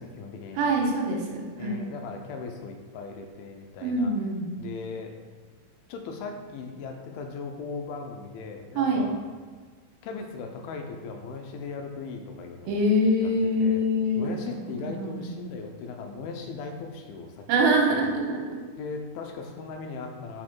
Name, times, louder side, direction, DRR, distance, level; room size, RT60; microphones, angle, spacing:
voice 1, 0.0-0.7 1.6-4.1 4.6-5.1 5.9-9.2 10.0-12.8 13.2-13.3 13.6-13.8 14.2-18.1 18.8-20.4, left 4 dB, 85° left, 4 dB, 2.5 m, -38 dB
voice 2, 0.6-1.9 3.8-4.5 8.8-9.1 12.7-14.3 14.8-15.3 17.5-18.4, equal, 75° right, -1 dB, 2.6 m, -24 dB
5.7 x 4.3 x 4.5 m, 1.5 s
omnidirectional pair, 4.4 m